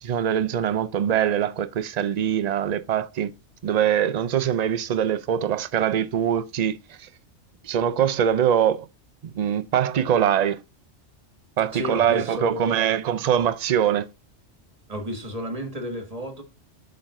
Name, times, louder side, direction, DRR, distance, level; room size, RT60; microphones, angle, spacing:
voice 1, 0.0-3.3 3.6-7.1 7.6-8.9 9.3-10.6 11.6-14.1, right 9 dB, 45° right, 0.5 m, -23 dB
voice 2, 11.7-12.8 14.9-16.4, left 1 dB, 30° right, 1.6 m, -32 dB
7.2 x 5.2 x 2.5 m
omnidirectional pair, 1.2 m